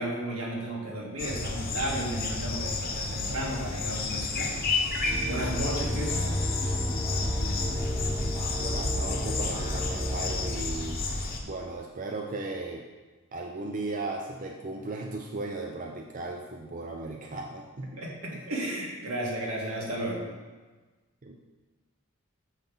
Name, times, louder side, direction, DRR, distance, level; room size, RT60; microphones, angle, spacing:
voice 1, 0.0-4.5 5.2-6.4 18.0-20.3, right 1 dB, 80° right, -3 dB, 2.2 m, -33 dB
sound 1, 1.2-11.4, left 3 dB, 40° left, 0.9 m, -31 dB
sound 2, 5.0-10.5, equal, 20° right, 1.1 m, -34 dB
Bowed string instrument, 5.5-9.2, left 1 dB, 15° left, 0.8 m, -36 dB
voice 2, 8.6-11.0 11.4-12.8 13.3-18.0 18.3-18.4 21.2-21.3, right 2 dB, 35° right, 1 dB, 0.5 m, -36 dB
7.2 x 5.7 x 5.4 m, 1.3 s
head